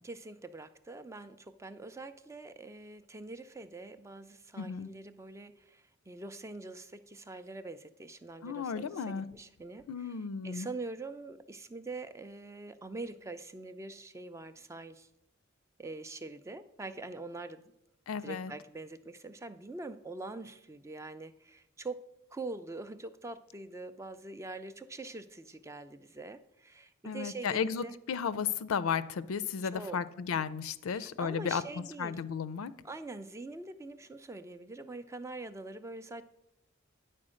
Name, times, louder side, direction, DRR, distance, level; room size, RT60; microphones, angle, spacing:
voice 1, 0.0-10.2 10.4-15.1 15.8-17.6 18.2-22.0 22.3-27.9 29.6-30.0 30.9-32.2 32.8-36.2, right 2 dB, 15° right, 12 dB, 0.3 m, -44 dB
voice 2, 4.6-4.9 8.4-9.3 9.9-10.7 18.1-18.5 27.0-31.6 32.0-32.7, left 6 dB, 85° left, 15 dB, 0.4 m, -34 dB
9.8 x 4.3 x 6.3 m, 0.84 s
head